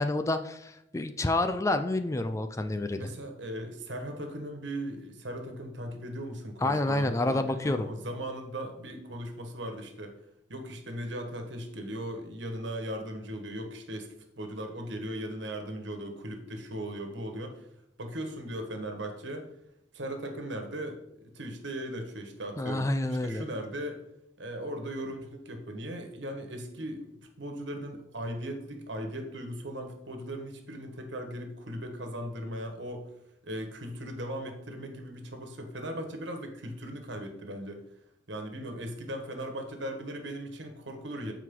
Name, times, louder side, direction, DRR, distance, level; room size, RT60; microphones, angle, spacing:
voice 1, 0.0-3.1 6.6-7.9 22.6-23.4, left 2 dB, 15° left, 9 dB, 0.4 m, -28 dB
voice 2, 2.9-10.1 10.5-17.7 18.0-19.5 19.9-22.9 23.2-24.0 24.4-27.1 27.4-33.1 33.4-37.8 38.3-41.3, right 1 dB, 70° right, 5 dB, 1.5 m, -38 dB
14.0 x 4.7 x 3.8 m, 0.83 s
head